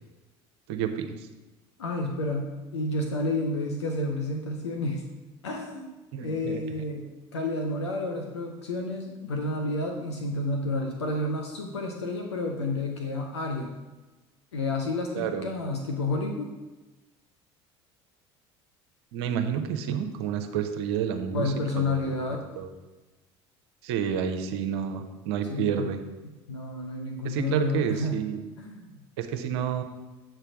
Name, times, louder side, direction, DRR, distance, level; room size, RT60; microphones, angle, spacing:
voice 1, 0.7-1.3 6.1-6.6 15.1-15.5 19.1-22.1 22.6-22.7 23.8-26.0 27.2-28.4 29.2-29.8, right 8 dB, 75° right, 6 dB, 0.6 m, -30 dB
voice 2, 1.8-5.0 5.4-5.9 6.2-13.8 14.5-16.5 21.3-22.4 25.5-25.9 26.5-28.2 28.6-29.0, left 2 dB, 90° left, 2 dB, 0.7 m, -30 dB
7.4 x 3.4 x 6.0 m, 1.2 s
hypercardioid pair, 70°, 14 cm